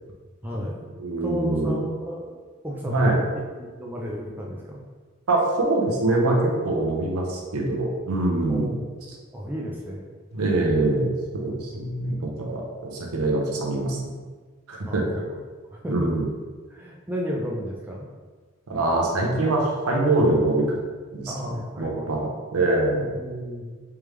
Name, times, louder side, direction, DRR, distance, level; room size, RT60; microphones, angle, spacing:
voice 1, 0.4-0.8 1.2-2.4 2.6-3.2 3.5-4.8 8.5-9.0 9.3-10.1 14.8-15.4 15.7-16.3 16.7-18.1 21.3-22.1 23.1-23.8, equal, 10° right, -3 dB, 0.4 m, -33 dB
voice 2, 1.0-1.8 2.9-3.2 5.3-8.7 10.3-14.0 14.7-15.0 15.9-16.3 18.7-20.8 21.1-23.1, right 2 dB, 85° right, -1 dB, 0.8 m, -24 dB
3.4 x 3.3 x 3.2 m, 1.4 s
head